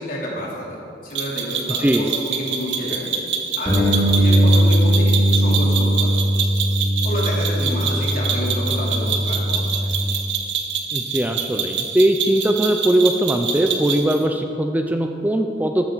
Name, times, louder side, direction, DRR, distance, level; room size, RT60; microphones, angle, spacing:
voice 1, 0.0-3.2 3.5-6.2 7.0-9.9, equal, 50° left, -5 dB, 3.5 m, -29 dB
sound 1, 1.2-14.2, right 6 dB, 80° right, 1.2 m, -26 dB
voice 2, 1.8-2.1 10.9-15.9, right 1 dB, 10° right, 4 dB, 0.5 m, -20 dB
Bass guitar, 3.6-9.9, equal, 10° left, 2.9 m, -19 dB
13.5 x 13.0 x 4.0 m, 2.7 s
head